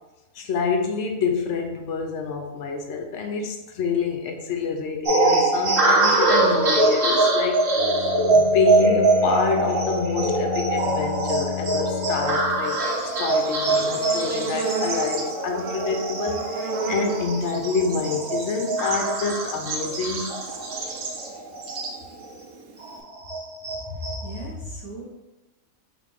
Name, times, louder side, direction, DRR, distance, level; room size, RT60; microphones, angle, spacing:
voice 1, 0.3-7.7 8.3-12.8 13.2-20.4, left 4 dB, 65° left, 3 dB, 0.8 m, -27 dB
sound 1, 5.1-22.0 22.3-22.4 22.8-24.4, right 2 dB, 65° right, 1.4 m, -23 dB
Bowed string instrument, 7.8-12.9, left 11 dB, 85° left, 1.0 m, -32 dB
Bird / Insect, 12.4-23.0, right 3 dB, 85° right, 1.1 m, -33 dB
voice 2, 23.8-25.1, left 1 dB, 15° left, -7 dB, 1.3 m, -35 dB
3.9 x 3.2 x 3.5 m, 1.0 s
omnidirectional pair, 1.5 m